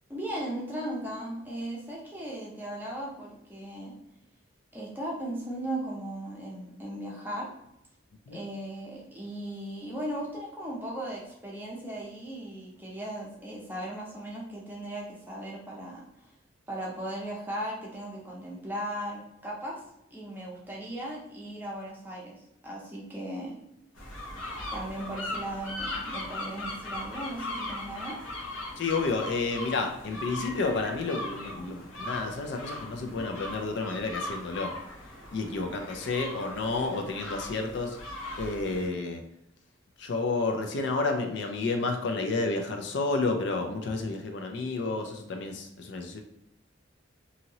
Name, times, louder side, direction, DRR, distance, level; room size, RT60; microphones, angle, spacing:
voice 1, 0.1-4.0 4.7-7.5 8.3-16.3 16.7-19.8 20.1-22.3 22.6-23.6 24.7-28.2, right 1 dB, 10° right, -3 dB, 0.6 m, -37 dB
sound 1, 24.0-38.9, left 1 dB, 85° left, 0.9 m, -39 dB
voice 2, 28.8-34.7 35.3-38.0 38.4-39.2 40.0-46.2, left 3 dB, 60° left, 4 dB, 0.4 m, -30 dB
2.8 x 2.7 x 2.8 m, 0.80 s
head